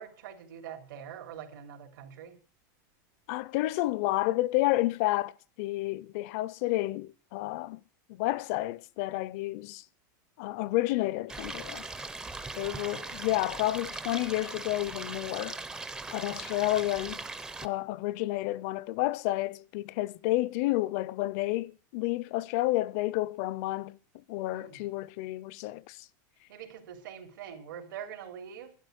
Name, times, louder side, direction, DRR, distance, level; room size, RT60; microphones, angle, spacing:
voice 1, 0.0-2.4 12.5-13.4 24.5-24.8 26.5-28.7, right 9 dB, 80° right, 3.3 m, -44 dB
voice 2, 3.3-7.8 8.1-9.8 10.4-11.9 12.6-15.6 16.1-17.2 17.6-24.0 24.3-26.1, left 17 dB, 50° left, 0.6 m, -30 dB
Stream, 11.3-17.7, right 3 dB, 5° right, 0.6 m, -40 dB
12.0 x 10.5 x 6.5 m
supercardioid pair, 160°, 10 cm